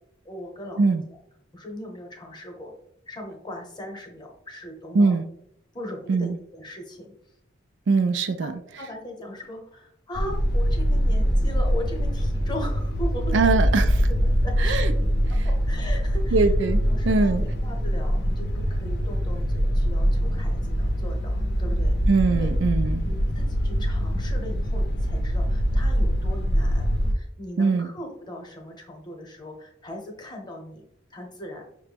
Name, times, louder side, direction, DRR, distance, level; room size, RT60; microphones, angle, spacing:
voice 1, 0.2-1.0 1.5-2.7 3.1-5.2 5.7-7.1 8.4-13.8 14.4-14.9 15.3-16.5 16.9-22.0 22.3-22.5 23.0-30.8 31.1-31.6, left 1 dB, 25° left, 1 dB, 0.9 m, -39 dB
voice 2, 7.9-8.5 13.3-13.9 14.6-14.9 16.3-17.4 22.1-23.0 27.6-27.9, right 4 dB, 70° right, 10 dB, 0.3 m, -22 dB
sound 1, 10.1-27.1, equal, 55° left, 0.6 m, -23 dB
5.8 x 2.1 x 3.3 m, 0.73 s
head